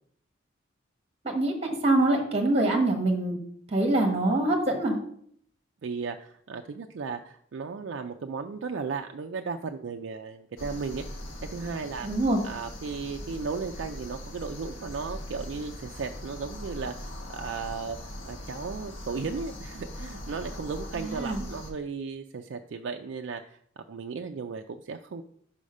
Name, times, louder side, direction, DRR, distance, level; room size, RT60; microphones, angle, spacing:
voice 1, 1.2-3.4 3.7-5.0 12.0-12.4 21.0-21.4, right 2 dB, 30° right, 2 dB, 1.2 m, -24 dB
voice 2, 5.8-11.0 11.4-12.1 12.4-18.0 18.3-25.2, right 5 dB, 65° right, 4 dB, 0.4 m, -35 dB
sound 1, 10.6-21.7, left 1 dB, 90° left, 1.4 m, -40 dB
5.6 x 4.9 x 5.3 m, 0.64 s
head